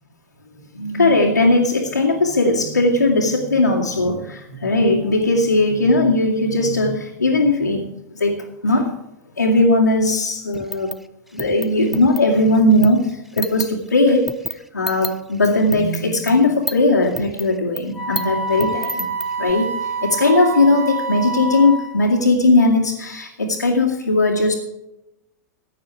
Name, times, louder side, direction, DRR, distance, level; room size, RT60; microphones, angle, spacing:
voice 1, 0.7-8.4 8.6-8.9 9.4-10.9 11.3-14.3 14.7-19.0 19.4-24.5, left 2 dB, 90° left, -5 dB, 2.4 m, -18 dB
sound 1, 10.5-13.7 14.2-16.8 17.0-19.5, equal, ahead, 0.8 m, -30 dB
Wind instrument woodwind instrument, 17.9-22.1, right 3 dB, 60° right, 4.9 m, -27 dB
16.0 x 9.8 x 4.9 m, 0.86 s
figure-of-eight pair, 95°, 9 cm